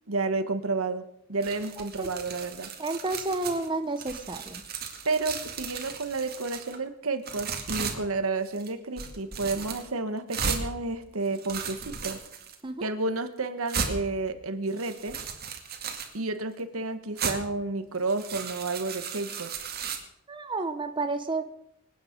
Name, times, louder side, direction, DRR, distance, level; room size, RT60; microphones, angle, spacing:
voice 1, 0.1-1.0 1.3-2.7 5.0-12.2 12.8-15.2 16.1-19.5, right 3 dB, 70° right, 10 dB, 1.4 m, -31 dB
sound 1, 1.4-3.7 4.0-6.8 7.2-8.0 8.4-8.7 9.0-9.8 10.3-10.6 11.2-12.5 13.1-13.2 13.7-13.9 14.7-16.1 17.2-17.3 17.9-20.0, right 6 dB, 45° right, 2.2 m, -35 dB
voice 2, 2.8-4.6 12.6-12.9 20.3-21.4, right 2 dB, 20° right, 7 dB, 0.9 m, -31 dB
25.5 x 9.5 x 5.3 m, 0.74 s
head